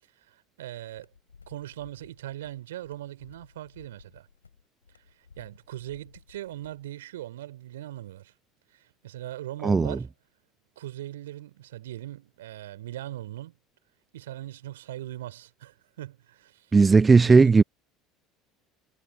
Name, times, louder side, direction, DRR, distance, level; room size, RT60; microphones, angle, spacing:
voice 1, 0.2-1.1 1.5-4.3 5.4-8.3 8.7-10.1 10.8-13.5 14.1-16.7 17.2-17.5, right 14 dB, 70° right, 3.9 m, -40 dB
sound 1, 0.9-6.9, left 5 dB, 85° left, 5.7 m, -56 dB
voice 2, 9.6-10.0 16.7-17.6, right 4 dB, 20° right, 0.3 m, -16 dB
figure-of-eight pair, 65°, 0 cm